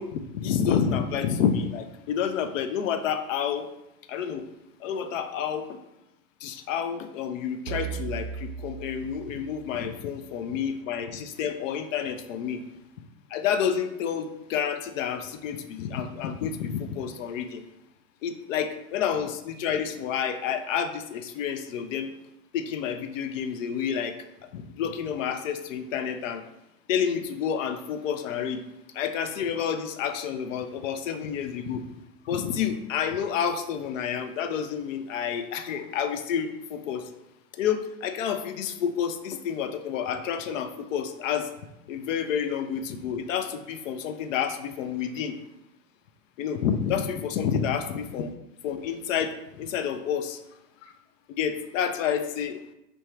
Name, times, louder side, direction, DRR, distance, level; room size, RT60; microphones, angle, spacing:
voice 1, 0.0-3.7 4.1-4.5 4.8-5.8 6.4-12.6 13.3-17.6 18.2-22.1 22.5-24.2 24.5-26.4 26.9-28.6 28.9-31.9 32.2-37.1 37.5-41.5 41.9-45.4 46.4-48.3 48.6-50.4 50.8-51.0 51.4-52.6, left 8 dB, 55° left, 9 dB, 0.5 m, -29 dB
sound 1, 7.7-10.3, right 8 dB, 55° right, 0.5 m, -37 dB
4.6 x 2.6 x 3.1 m, 0.89 s
hypercardioid pair, 130°, 46 cm